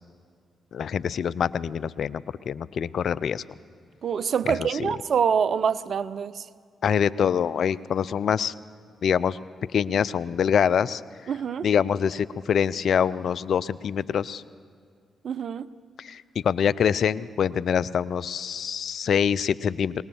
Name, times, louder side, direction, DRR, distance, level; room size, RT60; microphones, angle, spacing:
voice 1, 0.7-3.4 4.5-4.9 6.8-8.5 9.0-9.4 9.7-11.3 11.6-14.4 16.0-20.0, left 8 dB, 65° left, 0.5 m, -25 dB
voice 2, 4.0-6.4 11.3-11.7 15.2-15.7, right 7 dB, 60° right, 0.6 m, -25 dB
21.5 x 19.5 x 7.1 m
hypercardioid pair, 45°, 0 cm